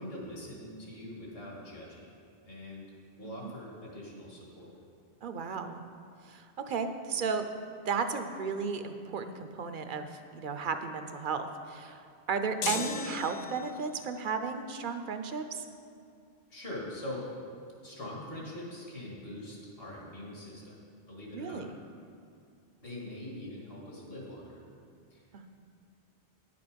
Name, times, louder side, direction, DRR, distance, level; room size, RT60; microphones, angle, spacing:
voice 1, 0.0-2.1 2.4-2.9 3.2-4.7 16.5-17.3 17.8-21.7 22.8-24.6 25.1-25.2, left 1 dB, 60° left, -4 dB, 2.0 m, -43 dB
voice 2, 5.2-5.8 6.2-7.5 7.9-15.6 21.3-21.8 25.3-25.5, right 5 dB, 55° right, 8 dB, 0.7 m, -34 dB
sound 1, 12.6-13.9, left 6 dB, 80° left, 0.9 m, -36 dB
10.0 x 6.8 x 5.1 m, 2.4 s
omnidirectional pair, 1.1 m